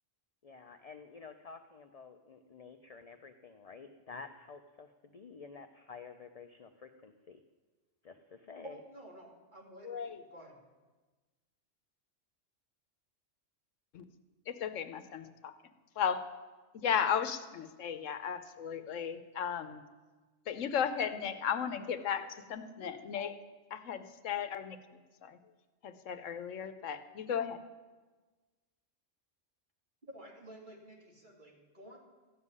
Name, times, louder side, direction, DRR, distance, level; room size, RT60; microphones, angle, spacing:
voice 1, 0.4-7.4 8.0-8.8, left 5 dB, 45° left, 7 dB, 0.5 m, -50 dB
voice 2, 8.6-10.6 30.0-32.0, equal, 40° right, -1 dB, 2.5 m, -52 dB
voice 3, 9.8-10.2 13.9-14.1 14.5-15.5 15.9-16.3 16.7-19.8 20.5-23.4 23.7-25.4 25.8-27.6, left 8 dB, 80° left, 10 dB, 1.1 m, -35 dB
13.5 x 7.3 x 9.6 m, 1.3 s
omnidirectional pair, 1.3 m